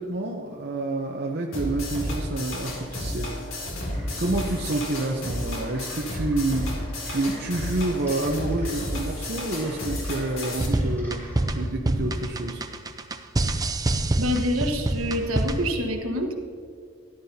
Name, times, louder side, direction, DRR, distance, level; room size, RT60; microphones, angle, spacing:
voice 1, 0.0-3.6 4.2-6.7 7.0-11.2 11.6-12.6, right 2 dB, 50° right, 0 dB, 0.7 m, -28 dB
sound 1, 1.5-10.7, left 1 dB, 70° left, 2.5 m, -32 dB
sound 2, 3.7-11.7, equal, 10° left, 2.7 m, -47 dB
sound 3, 10.6-15.8, right 1 dB, 15° right, 0.4 m, -26 dB
voice 2, 14.2-16.3, equal, 75° right, 3 dB, 1.3 m, -26 dB
13.5 x 12.0 x 2.8 m, 2.3 s
head